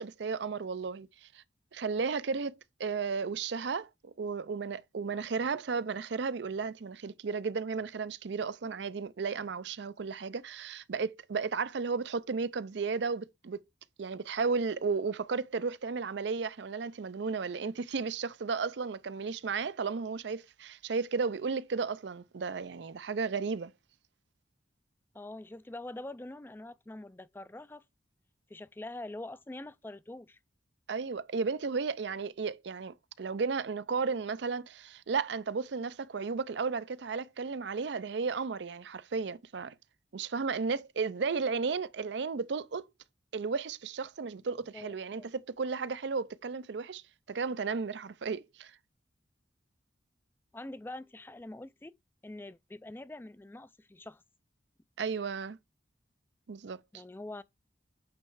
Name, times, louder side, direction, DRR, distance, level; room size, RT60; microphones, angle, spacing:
voice 1, 0.0-1.4 1.7-13.6 14.0-23.7 30.9-39.8 40.1-42.9 43.3-47.0 47.3-48.7 55.0-55.6 56.5-56.8, right 5 dB, 70° right, 0.5 m, -34 dB
voice 2, 25.1-27.8 28.5-30.4 44.7-45.3 50.5-51.9 52.2-54.2 56.9-57.4, left 2 dB, 10° left, 0.3 m, -44 dB
8.8 x 3.1 x 4.7 m
head